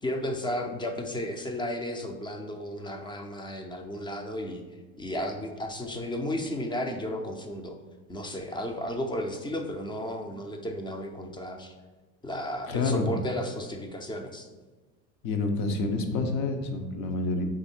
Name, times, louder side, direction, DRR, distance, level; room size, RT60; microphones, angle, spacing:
voice 1, 0.0-4.6 5.0-7.8 8.1-11.7 12.2-14.5, left 1 dB, 10° left, 4 dB, 0.5 m, -33 dB
voice 2, 12.7-13.1 15.2-17.4, left 3 dB, 55° left, 5 dB, 0.8 m, -28 dB
3.8 x 3.1 x 4.4 m, 1.2 s
supercardioid pair, 95°, 41 cm